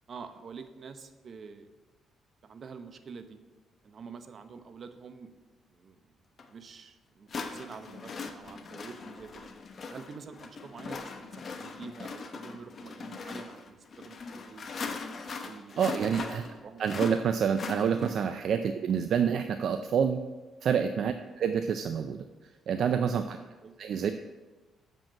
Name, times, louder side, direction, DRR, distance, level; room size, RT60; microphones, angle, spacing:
voice 1, 0.1-1.7 2.4-3.4 3.8-5.3 5.7-6.0 6.5-9.5 9.9-14.7 15.4-16.9 21.1-21.3 23.3-23.7, right 5 dB, 50° right, 9 dB, 0.8 m, -47 dB
sound 1, 6.4-6.5 7.3-18.4, left 4 dB, 45° left, 0.9 m, -40 dB
voice 2, 15.8-16.4 16.8-20.2 20.6-22.2 22.7-23.4 23.8-24.1, right 7 dB, 65° right, 9 dB, 0.4 m, -27 dB
7.2 x 5.3 x 7.3 m, 1.2 s
cardioid pair, 90°, 0 cm